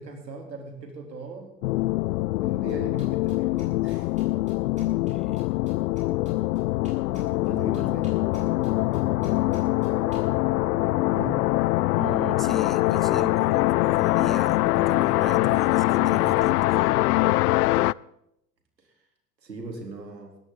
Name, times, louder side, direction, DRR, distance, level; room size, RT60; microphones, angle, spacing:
voice 1, 0.0-1.5 2.4-4.1 7.4-8.1 11.1-11.5 19.4-20.3, right 3 dB, 90° right, 3 dB, 3.9 m, -39 dB
sound 1, 1.6-17.9, left 18 dB, 70° left, 0.5 m, -23 dB
sound 2, 2.7-10.2, right 1 dB, 15° right, 7.8 m, -46 dB
voice 2, 5.1-5.4 7.5-7.8 11.9-17.0, equal, ahead, 14 dB, 0.5 m, -37 dB
19.5 x 16.0 x 4.1 m, 0.80 s
hypercardioid pair, 95°, 49 cm